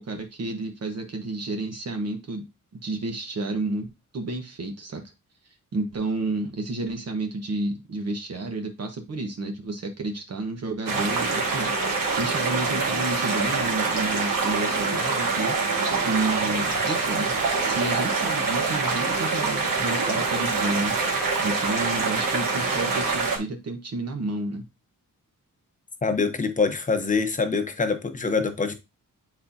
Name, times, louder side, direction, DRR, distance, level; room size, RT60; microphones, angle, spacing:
voice 1, 0.0-5.0 5.7-24.6, right 2 dB, 50° right, 1.1 m, -31 dB
sound 1, 10.9-23.4, right 4 dB, 85° right, 1.9 m, -25 dB
voice 2, 26.0-28.7, left 4 dB, 25° left, 0.8 m, -25 dB
9.3 x 4.3 x 2.7 m
wide cardioid pair, 170°, 32 cm